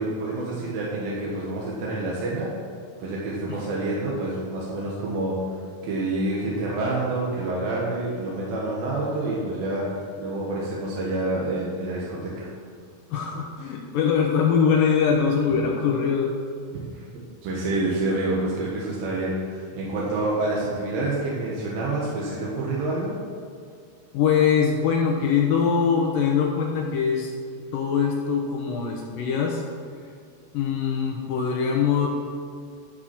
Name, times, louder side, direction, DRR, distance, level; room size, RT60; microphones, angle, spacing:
voice 1, 0.0-2.5 3.0-9.8 10.2-12.5 16.9-17.0 17.4-23.1, right 2 dB, 65° right, -5 dB, 3.0 m, -27 dB
voice 2, 13.1-16.3 24.1-27.3 27.7-29.6 30.5-32.1, left 6 dB, 70° left, 0 dB, 2.2 m, -22 dB
12.5 x 6.0 x 5.9 m, 2.3 s
omnidirectional pair, 4.8 m